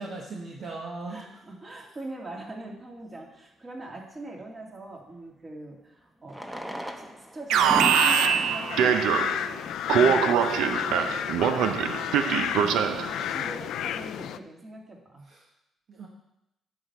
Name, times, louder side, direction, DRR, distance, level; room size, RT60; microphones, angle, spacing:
voice 1, 0.0-1.2 13.1-13.4 15.3-15.4 15.9-16.1, right 3 dB, 60° right, -1 dB, 1.3 m, -38 dB
voice 2, 1.1-6.4 6.9-9.2 9.5-12.8 13.3-15.3, right 2 dB, 30° right, -1 dB, 2.4 m, -42 dB
Fireworks, 2.7-2.8 5.1-5.2 6.2-10.0 10.7-10.8 11.0-11.1 11.3-11.4 11.9-12.2, equal, 5° right, 0.9 m, -38 dB
Alarm, 7.5-9.5 9.9-13.1, right 8 dB, 85° right, 0.6 m, -23 dB
sound 1, 7.8-14.4, left 10 dB, 80° left, 0.4 m, -31 dB
9.7 x 4.9 x 6.9 m, 0.85 s
cardioid pair, 90°, 0 cm